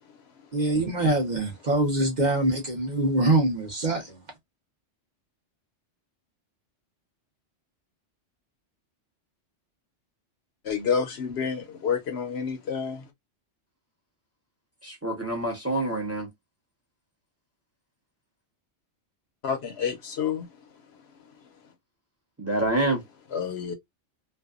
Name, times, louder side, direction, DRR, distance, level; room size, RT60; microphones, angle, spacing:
voice 1, 0.5-4.2, right 2 dB, 45° right, 0.8 m, -24 dB
voice 2, 10.6-13.1 19.4-20.5 23.3-23.7, left 6 dB, 65° left, 0.8 m, -29 dB
voice 3, 14.8-16.3 22.4-23.0, right 1 dB, 15° right, 0.7 m, -27 dB
2.6 x 2.2 x 2.2 m
omnidirectional pair, 1.2 m